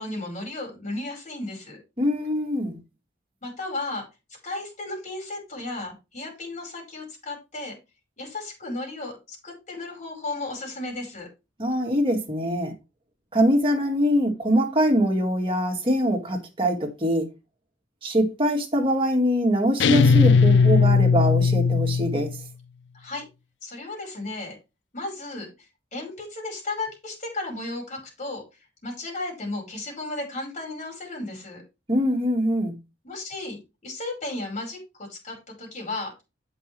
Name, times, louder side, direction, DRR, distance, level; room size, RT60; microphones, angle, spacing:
voice 1, 0.0-1.8 3.4-4.1 4.4-7.8 8.2-11.3 22.9-23.2 23.6-24.6 24.9-28.4 28.8-31.6 33.0-36.1, left 2 dB, 45° left, 5.1 m, -34 dB
voice 2, 2.0-2.8 11.6-12.7 13.3-17.3 18.0-22.3 31.9-32.8, equal, 30° right, 2.4 m, -23 dB
sound 1, 19.8-22.4, left 5 dB, 75° left, 0.5 m, -18 dB
8.2 x 5.7 x 4.7 m
head